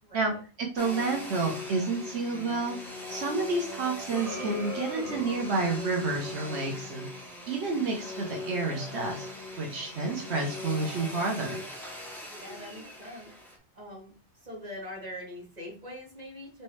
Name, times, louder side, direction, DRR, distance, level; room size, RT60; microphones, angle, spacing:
voice 1, 0.0-0.4 12.4-13.3 13.8-14.1 14.4-16.6, left 1 dB, 40° right, -6 dB, 2.4 m, -42 dB
voice 2, 0.7-2.8 3.1-9.3 9.6-11.6, right 3 dB, 85° right, 0 dB, 1.2 m, -30 dB
Domestic sounds home sounds, 0.8-13.6, left 2 dB, ahead, 0.9 m, -40 dB
sound 1, 4.1-6.2, equal, 15° right, 1.3 m, -39 dB
4.2 x 3.4 x 3.2 m, 0.36 s
omnidirectional pair, 1.1 m